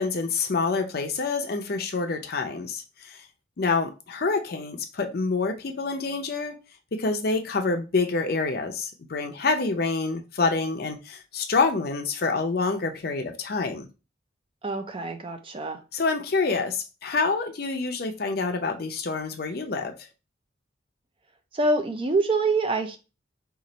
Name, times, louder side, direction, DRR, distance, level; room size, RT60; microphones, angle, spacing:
voice 1, 0.0-3.2 3.6-6.5 6.9-13.9 15.9-20.0, left 4 dB, 55° left, 0.6 m, -27 dB
voice 2, 14.6-15.8 21.5-23.0, right 3 dB, 30° right, 0.4 m, -25 dB
3.0 x 2.5 x 3.9 m
head